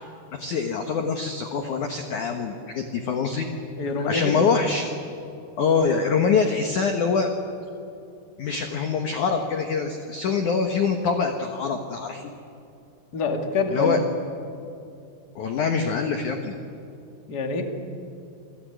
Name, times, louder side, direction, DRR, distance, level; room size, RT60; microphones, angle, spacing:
voice 1, 0.3-3.5 4.1-4.9 5.6-7.3 8.4-12.3 13.7-14.0 15.4-16.6, left 5 dB, 65° left, 5 dB, 1.9 m, -24 dB
voice 2, 3.8-4.5 13.1-13.9 17.3-17.6, left 3 dB, 35° left, 3 dB, 1.8 m, -25 dB
28.5 x 21.0 x 9.3 m, 2.6 s
omnidirectional pair, 5.6 m